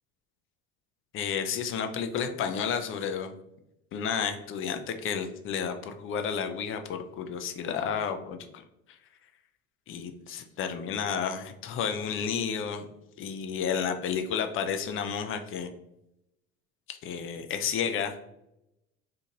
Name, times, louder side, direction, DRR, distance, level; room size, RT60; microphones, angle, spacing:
voice 1, 1.1-3.3 3.9-8.6 9.9-12.9 13.2-15.7 16.9-18.3, left 7 dB, 35° left, 7 dB, 0.4 m, -31 dB
2.7 x 2.5 x 2.8 m, 0.84 s
hypercardioid pair, 65°, 40 cm